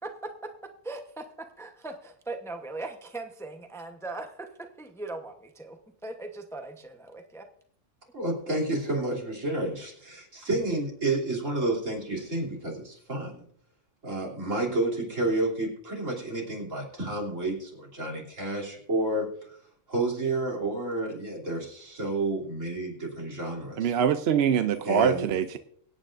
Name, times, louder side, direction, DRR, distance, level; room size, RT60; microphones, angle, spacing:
voice 1, 0.0-0.5 0.8-7.5, right 2 dB, 5° left, 5 dB, 0.8 m, -39 dB
voice 2, 8.1-13.4 14.0-19.3 19.9-23.9 24.8-25.3, right 2 dB, 80° right, -2 dB, 3.5 m, -30 dB
voice 3, 23.8-25.6, right 8 dB, 60° right, 10 dB, 0.8 m, -24 dB
24.0 x 9.0 x 2.5 m, 0.62 s
omnidirectional pair, 1.3 m